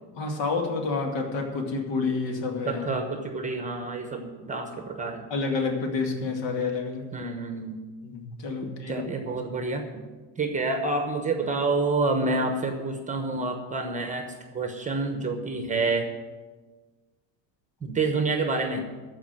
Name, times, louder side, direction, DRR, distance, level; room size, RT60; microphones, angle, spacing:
voice 1, 0.1-2.8 5.3-7.1 8.0-9.3, left 4 dB, 60° left, 3 dB, 2.4 m, -29 dB
voice 2, 2.6-5.2 7.1-7.8 8.9-10.0 10.4-16.1 17.8-18.8, right 3 dB, 15° right, 5 dB, 1.0 m, -28 dB
14.0 x 5.1 x 9.2 m, 1.3 s
cardioid pair, 150°, 49 cm